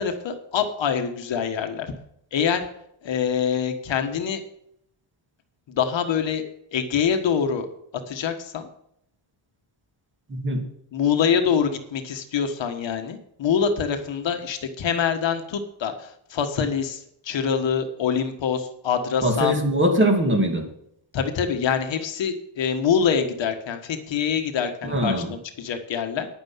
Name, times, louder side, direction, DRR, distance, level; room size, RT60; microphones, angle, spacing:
voice 1, 0.0-1.9 2.3-2.7 3.0-4.4 5.7-6.4 6.7-7.7 8.1-8.7 10.9-19.6 21.1-26.3, left 7 dB, 60° left, 6 dB, 1.5 m, -25 dB
voice 2, 10.3-10.6 19.2-20.6 24.8-25.3, right 1 dB, 25° right, 3 dB, 2.3 m, -21 dB
11.0 x 9.4 x 5.7 m, 0.73 s
cardioid pair, 145°, 50 cm